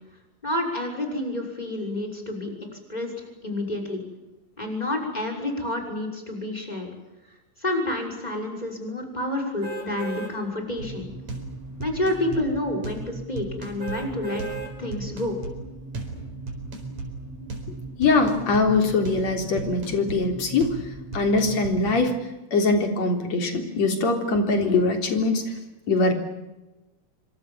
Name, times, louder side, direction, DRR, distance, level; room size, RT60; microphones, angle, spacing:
voice 1, 0.4-2.5 2.9-3.1 3.4-4.0 4.6-6.9 7.6-11.1 11.8-15.4, left 1 dB, 15° left, 2 dB, 6.3 m, -29 dB
sound 1, 9.6-10.3 10.9-11.0 13.8-14.7 15.3-15.4, right 5 dB, 30° right, 4.9 m, -35 dB
sound 2, 10.8-22.1, right 3 dB, 70° right, 5.6 m, -36 dB
voice 2, 18.0-20.8 21.1-22.2 22.5-25.5 25.9-26.1, left 3 dB, 65° left, 4 dB, 4.7 m, -22 dB
26.5 x 25.5 x 7.4 m, 1.0 s
omnidirectional pair, 3.3 m